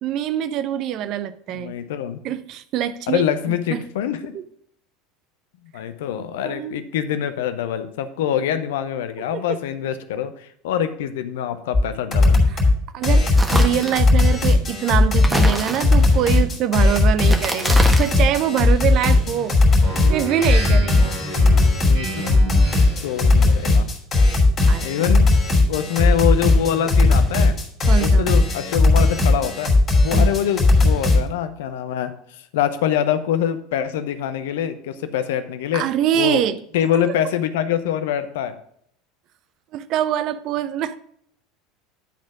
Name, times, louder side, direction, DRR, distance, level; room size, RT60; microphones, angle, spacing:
voice 1, 0.0-1.7 2.2-3.2 3.7-3.9 4.3-4.4 6.4-6.8 9.2-9.4 12.5-12.6 12.9-19.6 20.1-21.1 24.7-24.9 27.9-28.3 30.1-30.3 35.7-36.6 37.0-37.1 39.7-41.0, right 10 dB, 50° right, 0.5 m, -24 dB
voice 2, 1.5-2.2 3.1-4.4 5.7-12.4 21.8-22.4 23.0-23.9 24.8-25.3 25.7-27.6 28.0-29.7 30.0-35.8 36.1-36.4 36.7-38.6, left 10 dB, 65° left, 0.7 m, -25 dB
sound 1, 11.7-11.8 12.1-12.7 13.0-31.2, left 2 dB, 30° left, 2.7 m, -17 dB
sound 2, 13.4-14.1 15.2-16.2 17.2-18.2, right 2 dB, 15° right, 1.3 m, -26 dB
Speech synthesizer, 19.8-23.1, right 2 dB, 80° right, 3.3 m, -30 dB
10.0 x 4.2 x 6.1 m
figure-of-eight pair, 75°, 0 cm